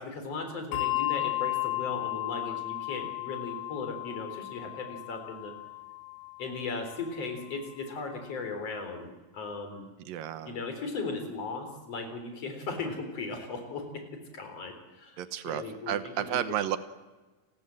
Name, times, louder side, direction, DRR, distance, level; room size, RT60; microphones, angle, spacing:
voice 1, 0.0-5.5 6.4-9.9 10.5-14.0 14.3-16.6, left 3 dB, 45° left, 6 dB, 4.8 m, -37 dB
Bell, 0.7-7.6, left 20 dB, 70° left, 2.6 m, -35 dB
voice 2, 10.1-10.6 15.2-16.8, right 11 dB, 85° right, 12 dB, 2.7 m, -32 dB
29.5 x 20.5 x 7.7 m, 1.3 s
omnidirectional pair, 3.9 m